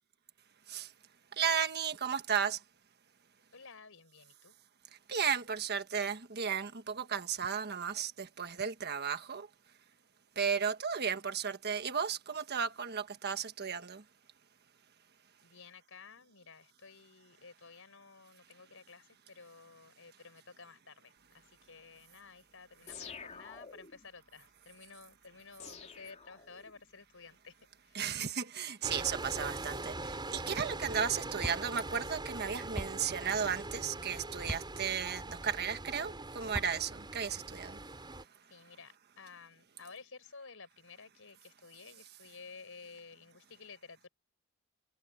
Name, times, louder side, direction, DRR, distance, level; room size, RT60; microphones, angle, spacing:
voice 1, 1.4-2.6 5.1-9.5 10.4-14.0 27.9-37.8, right 7 dB, 50° right, 1.4 m, -34 dB
voice 2, 3.5-4.6 15.4-27.6 27.8-28.1 38.5-44.1, left 5 dB, 65° left, 6.0 m, -53 dB
sound 1, 22.9-24.1 25.6-26.9, left 5 dB, 35° left, 3.3 m, -49 dB
sound 2, 28.8-38.2, right 2 dB, 20° right, 5.7 m, -42 dB
sound 3, 31.4-31.6 32.8-32.9 34.4-34.7 36.4-36.7, equal, 5° left, 4.2 m, -39 dB
head